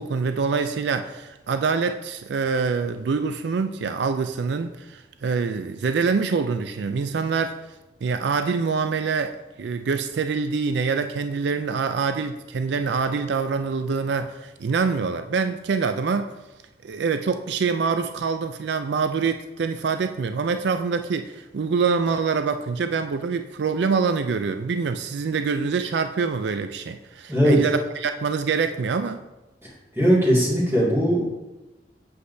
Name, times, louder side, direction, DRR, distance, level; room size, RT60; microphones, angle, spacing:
voice 1, 0.0-7.6 8.0-16.3 16.8-29.2, right 5 dB, 75° right, 9 dB, 0.4 m, -25 dB
voice 2, 29.9-31.2, equal, 15° right, -7 dB, 2.1 m, -19 dB
8.2 x 7.9 x 2.7 m, 1.0 s
head